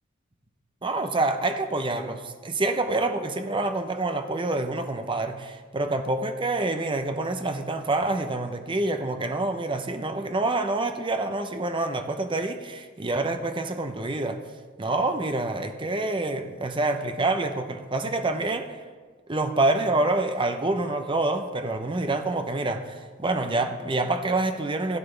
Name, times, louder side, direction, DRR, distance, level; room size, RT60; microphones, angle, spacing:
voice 1, 0.8-14.4 14.8-18.8 19.3-25.0, right 2 dB, 25° right, 0.7 m, -27 dB
16.5 x 9.3 x 3.4 m
head